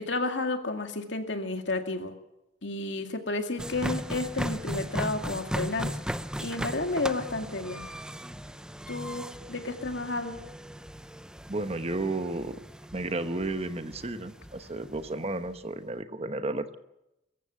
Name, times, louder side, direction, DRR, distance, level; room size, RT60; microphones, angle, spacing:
voice 1, 0.0-2.1 2.6-6.0 6.4-7.9 8.9-10.4, left 2 dB, 85° left, 5 dB, 2.3 m, -31 dB
sound 1, 3.6-15.6, equal, 5° right, 0.6 m, -37 dB
voice 2, 11.5-12.5 12.9-16.8, right 2 dB, 35° right, 10 dB, 1.1 m, -32 dB
22.5 x 14.5 x 8.3 m, 0.91 s
head